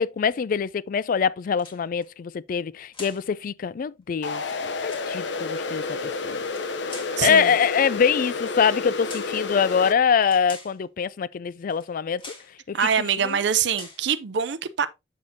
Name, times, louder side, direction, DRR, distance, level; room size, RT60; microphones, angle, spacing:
voice 1, 0.0-6.4 7.2-12.2 12.7-12.8 13.2-13.4, left 6 dB, 45° left, 0.3 m, -24 dB
sound 1, 1.5-2.1 2.9-3.3 4.3-5.1 6.4-7.2 8.1-8.4 9.1-9.4 10.2-10.8 11.7-11.9 12.2-12.5 13.1-13.4 13.7-14.1, left 3 dB, 30° left, 1.5 m, -44 dB
sound 2, 4.2-9.9, left 4 dB, 70° left, 0.8 m, -30 dB
voice 2, 7.2-7.5 12.7-14.9, right 7 dB, 65° right, 0.5 m, -24 dB
7.3 x 6.4 x 2.8 m
head